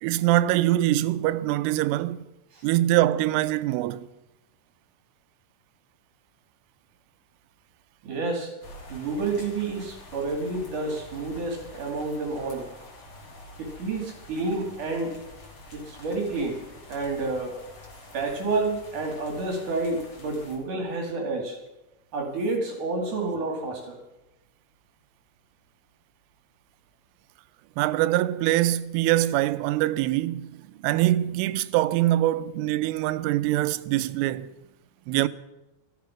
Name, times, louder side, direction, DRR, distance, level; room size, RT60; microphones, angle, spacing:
voice 1, 0.0-2.3 2.6-4.1 27.8-30.5 30.8-34.5 35.1-35.3, right 15 dB, 90° right, 3.2 m, -23 dB
voice 2, 8.0-8.5 8.9-12.7 13.6-15.1 15.7-16.6 16.9-17.5 18.1-21.6 22.1-24.0, right 3 dB, 50° right, 2.9 m, -29 dB
sound 1, 8.6-20.6, left 1 dB, 35° left, 2.6 m, -47 dB
13.5 x 13.5 x 5.8 m
omnidirectional pair, 5.6 m